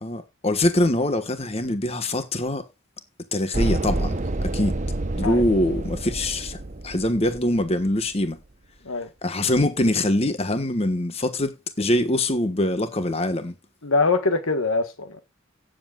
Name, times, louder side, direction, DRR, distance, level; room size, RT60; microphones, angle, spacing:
voice 1, 0.0-2.7 3.3-4.8 5.1-6.6 6.8-8.4 9.2-13.5, left 1 dB, 30° left, 1.3 m, -23 dB
sound 1, 3.5-7.8, right 2 dB, 35° right, 0.8 m, -28 dB
voice 2, 13.8-15.2, left 3 dB, 85° left, 1.3 m, -23 dB
17.0 x 7.7 x 2.4 m
head